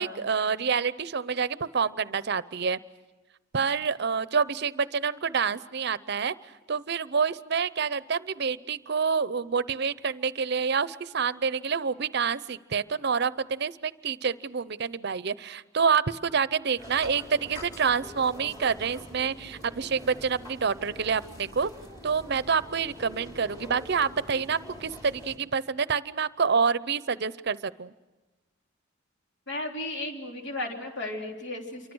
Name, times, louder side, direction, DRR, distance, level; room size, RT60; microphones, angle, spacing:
voice 1, 0.0-2.8 3.5-6.3 6.7-21.7 22.0-27.9, right 6 dB, 60° right, 16 dB, 0.7 m, -27 dB
sound 1, 16.8-25.4, left 1 dB, 20° left, 3.7 m, -45 dB
voice 2, 29.5-31.9, left 2 dB, 65° left, 2 dB, 3.5 m, -35 dB
28.0 x 24.0 x 6.3 m, 1.2 s
head